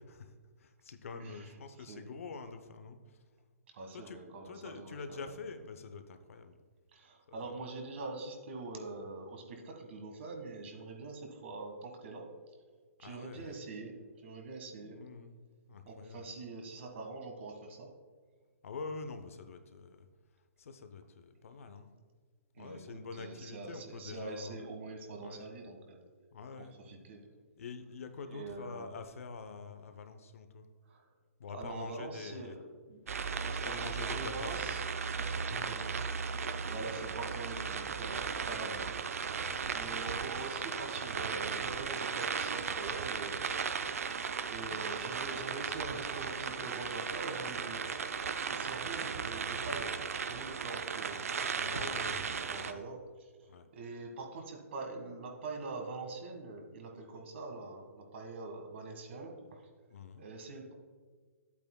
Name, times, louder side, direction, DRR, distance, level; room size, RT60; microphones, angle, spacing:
voice 1, 0.1-3.2 3.9-4.2 4.4-6.6 7.3-7.5 13.0-13.5 14.8-15.4 15.7-16.3 18.6-20.1 20.6-21.9 22.6-24.6 25.2-25.5 26.3-26.9 27.6-30.7 31.4-32.6 33.2-34.7 35.8-35.9 38.6-38.9 39.4-39.6 51.6-52.8 53.5-53.7 59.9-60.2, left 4 dB, 65° left, 8 dB, 0.7 m, -46 dB
voice 2, 1.2-2.1 3.7-5.3 6.9-12.6 13.0-15.0 15.8-17.9 22.5-22.8 23.1-26.0 26.6-27.2 28.2-28.9 30.8-31.1 31.5-32.6 32.9-33.0 33.4-34.8 35.2-38.8 39.2-39.4 39.7-43.6 44.4-59.7 60.1-60.7, right 3 dB, 50° right, 2 dB, 1.5 m, -44 dB
sound 1, 33.1-52.7, right 6 dB, 70° right, 0.5 m, -36 dB
10.0 x 8.2 x 2.2 m, 1.5 s
hypercardioid pair, 135°, 8 cm